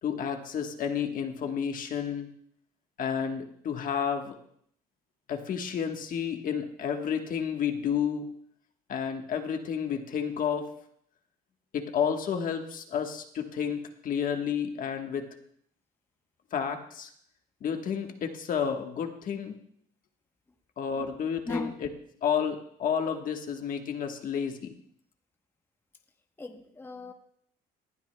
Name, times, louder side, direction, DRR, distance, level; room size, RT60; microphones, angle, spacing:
voice 1, 0.0-2.3 3.0-4.4 5.3-8.3 8.9-10.7 11.7-15.3 16.5-17.1 17.6-19.6 20.8-21.9 22.2-24.7, left 7 dB, 55° left, 5 dB, 1.3 m, -31 dB
voice 2, 21.5-21.8 26.4-27.1, left 2 dB, 15° left, 5 dB, 0.9 m, -36 dB
19.5 x 12.0 x 2.2 m, 0.67 s
cardioid pair, 110°, 17 cm